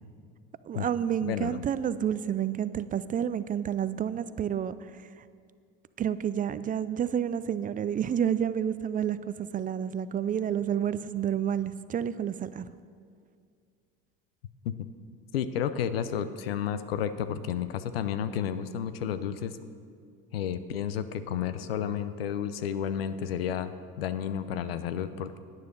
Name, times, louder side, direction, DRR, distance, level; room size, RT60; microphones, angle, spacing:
voice 1, 0.7-4.8 6.0-12.6, right 9 dB, 30° right, 15 dB, 0.4 m, -29 dB
voice 2, 1.2-1.6 14.6-14.7 15.3-19.6 20.3-25.4, left 9 dB, 90° left, 13 dB, 0.6 m, -31 dB
9.6 x 9.4 x 5.3 m, 2.2 s
hypercardioid pair, 75°, 29 cm